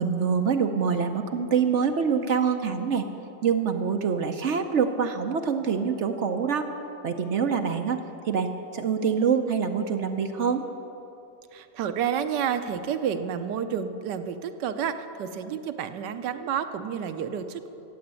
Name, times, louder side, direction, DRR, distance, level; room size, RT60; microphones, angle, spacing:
voice 1, 0.0-3.0 3.4-6.7 7.0-10.6, right 6 dB, 60° right, 6 dB, 0.8 m, -25 dB
voice 2, 11.5-17.7, right 8 dB, 80° right, 10 dB, 1.3 m, -30 dB
14.5 x 8.7 x 8.2 m, 3.0 s
omnidirectional pair, 1.8 m